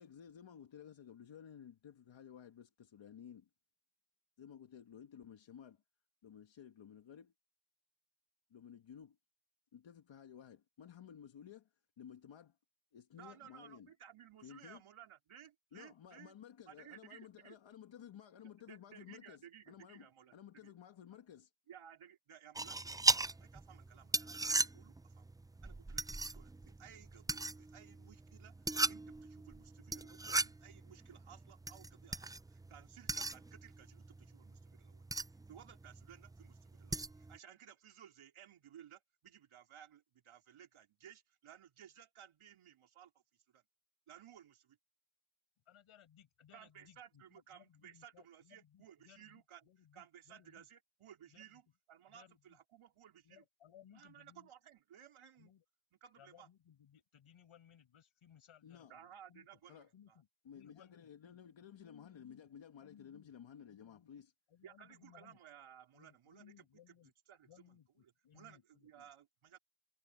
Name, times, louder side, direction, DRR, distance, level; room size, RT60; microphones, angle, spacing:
voice 1, 0.0-3.5 4.4-5.8 6.2-7.3 8.5-9.2 9.7-11.7 12.0-12.6 12.9-13.9 14.4-14.8 15.7-21.5 58.6-58.9 59.7-59.9 60.4-64.3, left 8 dB, 65° left, 1.6 m, -55 dB
voice 2, 13.2-16.3 16.7-17.6 18.4-20.7 21.7-25.3 25.6-35.0 35.5-43.1 43.5-43.6 44.1-44.8 46.5-49.7 49.9-51.6 51.9-53.4 53.9-55.5 56.0-56.5 58.9-60.2 64.6-66.6 67.3-69.6, right 9 dB, 85° right, 3.6 m, -58 dB
sound 1, 22.6-37.4, right 2 dB, 10° right, 0.3 m, -39 dB
voice 3, 45.7-50.7 51.3-51.6 52.1-52.6 53.2-54.5 55.4-55.6 56.1-59.5 59.9-62.5 62.8-63.3 63.7-64.1 64.5-65.4 65.9-67.1 67.4-69.1, left 9 dB, 85° left, 5.5 m, -64 dB
cardioid pair, 70°, 48 cm